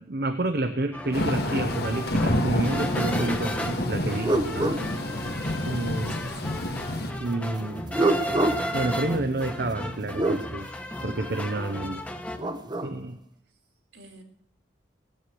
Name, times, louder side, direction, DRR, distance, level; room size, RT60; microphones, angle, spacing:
voice 1, 0.0-4.3 5.7-6.2 7.2-7.9 8.7-10.7 11.0-12.0 12.8-13.2, right 2 dB, 55° right, 8 dB, 0.8 m, -29 dB
sound 1, 0.9-12.4, equal, 10° left, 1.2 m, -34 dB
Thunder / Rain, 1.1-7.1, left 1 dB, 60° left, 1.5 m, -29 dB
sound 2, 3.2-3.4 3.8-5.8 7.7-10.4 12.1-13.0, right 2 dB, 25° right, 0.9 m, -29 dB
voice 2, 4.5-5.3 6.1-6.6 13.9-14.2, right 1 dB, 70° right, 3 dB, 2.7 m, -43 dB
17.5 x 8.4 x 7.7 m, 0.66 s
head